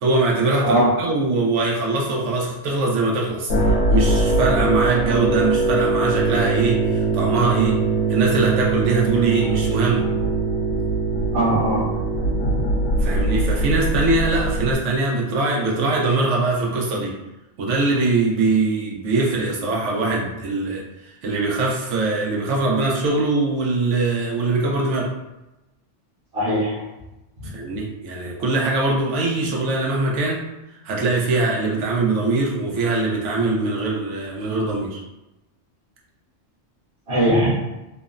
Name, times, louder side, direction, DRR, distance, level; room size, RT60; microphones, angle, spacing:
voice 1, 0.0-3.5 3.9-7.8 8.1-10.1 13.0-17.2 17.6-20.8 21.2-25.1 27.5-30.4 30.8-35.0, right 3 dB, 90° right, -2 dB, 1.0 m, -22 dB
voice 2, 0.6-1.0 11.3-11.9 12.4-12.6 26.3-26.8 27.4-27.5 37.1-37.5, right 1 dB, 55° right, -10 dB, 1.0 m, -20 dB
sound 1, 3.5-14.7, right 3 dB, 90° left, 0.9 m, -21 dB
3.0 x 2.0 x 2.4 m, 0.98 s
omnidirectional pair, 1.2 m